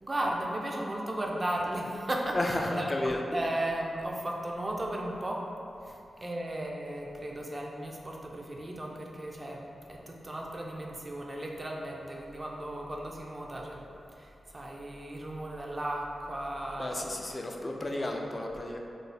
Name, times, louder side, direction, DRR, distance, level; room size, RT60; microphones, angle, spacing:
voice 1, 0.0-5.5 6.2-9.6 9.9-13.8 14.1-17.1 17.9-18.1, right 1 dB, 30° right, -1 dB, 0.5 m, -35 dB
voice 2, 2.3-3.2 5.9-6.0 16.7-18.8, left 1 dB, 35° left, 1 dB, 0.4 m, -33 dB
3.2 x 2.0 x 4.0 m, 2.6 s
cardioid pair, 65°, 0 cm